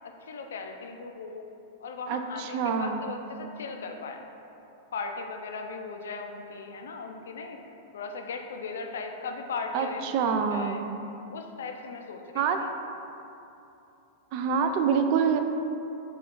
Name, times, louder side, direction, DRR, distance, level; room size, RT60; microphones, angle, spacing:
voice 1, 0.0-1.5 1.8-4.3 4.9-7.6 7.9-10.8 11.3-12.7, left 4 dB, 85° left, 4 dB, 0.4 m, -38 dB
voice 2, 2.1-3.1 9.7-10.9 12.3-12.6 14.3-15.4, right 6 dB, 55° right, 6 dB, 0.3 m, -26 dB
4.8 x 2.4 x 3.6 m, 2.8 s
hypercardioid pair, 120°, 0 cm